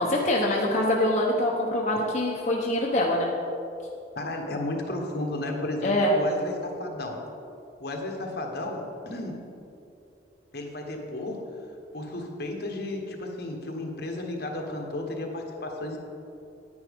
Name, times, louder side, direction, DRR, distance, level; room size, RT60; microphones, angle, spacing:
voice 1, 0.0-3.3 5.8-6.1, left 1 dB, 40° left, -3 dB, 0.9 m, -24 dB
voice 2, 4.2-7.2 7.8-9.4 10.5-11.4 11.9-16.0, left 1 dB, 60° left, 2 dB, 1.2 m, -33 dB
9.8 x 9.6 x 3.6 m, 2.7 s
head